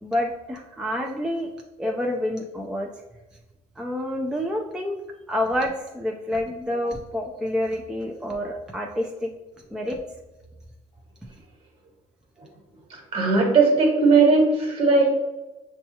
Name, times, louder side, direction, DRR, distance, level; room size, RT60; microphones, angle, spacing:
voice 1, 0.0-1.5 1.8-2.9 3.8-5.0 5.3-9.3 9.7-10.0, left 1 dB, 5° right, 1 dB, 0.4 m, -28 dB
voice 2, 13.1-15.1, right 4 dB, 45° right, 1 dB, 1.3 m, -18 dB
6.0 x 2.3 x 2.8 m, 1.1 s
supercardioid pair, 100°, 14 cm